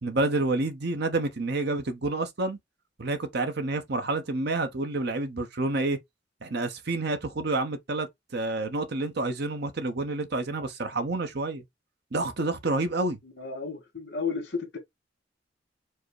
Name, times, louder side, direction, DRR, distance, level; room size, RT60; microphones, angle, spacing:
voice 1, 0.0-2.6 3.0-6.0 6.4-8.1 8.3-11.6 12.1-13.2, right 2 dB, 60° right, 0.9 m, -28 dB
voice 2, 13.2-14.8, left 5 dB, 65° left, 1.7 m, -33 dB
4.7 x 2.2 x 4.6 m
head